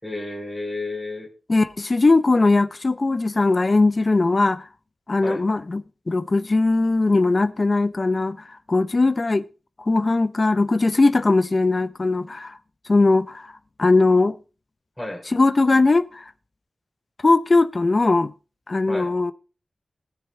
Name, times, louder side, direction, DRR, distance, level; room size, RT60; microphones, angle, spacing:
voice 1, 0.0-1.3 5.2-5.4 15.0-15.3 18.9-19.1, left 2 dB, 10° left, 3.3 m, -31 dB
voice 2, 1.5-4.7 5.1-9.4 9.9-12.6 12.9-13.5 13.8-14.3 15.3-16.2 17.2-18.3 18.7-19.3, left 3 dB, 40° left, 0.7 m, -19 dB
20.0 x 7.1 x 3.3 m
wide cardioid pair, 85°, 0 cm